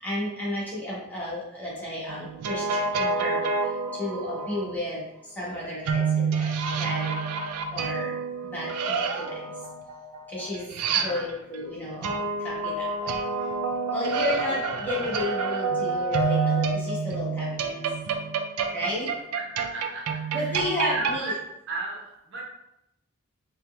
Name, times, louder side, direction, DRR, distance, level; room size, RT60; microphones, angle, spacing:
voice 1, 0.0-3.4 4.0-5.0 5.4-6.5 6.8-7.1 7.7-8.1 8.5-9.3 10.3-10.7 11.0-13.1 13.9-17.7 18.7-19.1 20.3-21.3, left 1 dB, 5° left, -7 dB, 1.1 m, -32 dB
sound 1, 2.1-4.6 5.9-11.5 12.0-21.2, right 4 dB, 80° right, 0.4 m, -28 dB
voice 2, 10.8-11.4 19.3-21.3 21.7-22.4, right 3 dB, 55° right, -3 dB, 0.9 m, -35 dB
4.1 x 2.2 x 3.3 m, 0.84 s
head